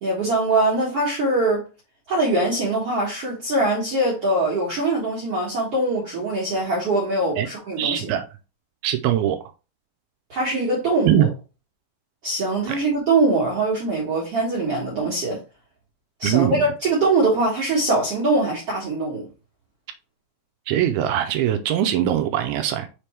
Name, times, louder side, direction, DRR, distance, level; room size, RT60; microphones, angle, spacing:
voice 1, 0.0-1.6 2.1-8.1 10.3-11.3 12.2-15.4 16.2-19.3, right 2 dB, 55° right, 1.7 m, -22 dB
voice 2, 7.8-8.2 8.8-9.5 11.0-11.3 12.7-12.8 16.2-16.6 20.7-22.9, right 11 dB, 80° right, 2.2 m, -21 dB
6.8 x 3.4 x 4.3 m
omnidirectional pair, 4.9 m